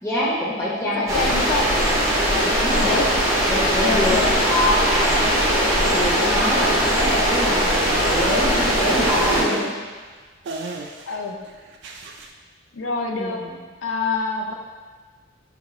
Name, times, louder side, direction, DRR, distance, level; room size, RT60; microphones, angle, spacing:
voice 1, 0.0-1.4 2.6-3.1 3.5-5.3 5.8-9.7 13.1-13.6, left 1 dB, 15° left, -7 dB, 0.8 m, -25 dB
voice 2, 0.8-1.7 2.3-3.1 3.8-4.3 11.1-11.4 12.7-13.4 13.8-14.5, left 4 dB, 70° left, 2 dB, 0.4 m, -26 dB
sound 1, 1.1-9.4, equal, 15° right, 0.7 m, -20 dB
sound 2, 8.8-9.7 10.5-11.2 11.5-12.3, right 2 dB, 60° right, 0.3 m, -30 dB
4.3 x 3.0 x 2.4 m, 1.4 s
head